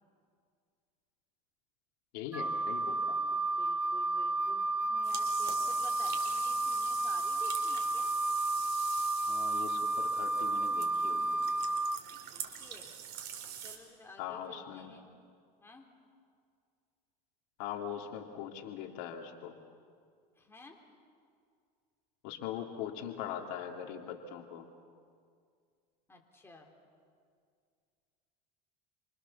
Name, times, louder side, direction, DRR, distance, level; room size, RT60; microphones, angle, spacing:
voice 1, 2.1-3.3 9.3-11.5 14.2-14.9 17.6-19.6 22.2-24.7, left 9 dB, 70° left, 3 dB, 2.7 m, -41 dB
Wind instrument woodwind instrument, 2.3-12.0, right 2 dB, 5° right, 0.8 m, -32 dB
voice 2, 3.4-8.1 12.3-12.9 13.6-15.1 15.6-15.9 20.4-20.8 26.1-26.7, left 3 dB, 10° left, 1 dB, 3.8 m, -53 dB
sound 1, 5.0-13.8, right 9 dB, 50° right, 4.4 m, -44 dB
28.0 x 25.5 x 7.1 m, 2.2 s
supercardioid pair, 120°, 21 cm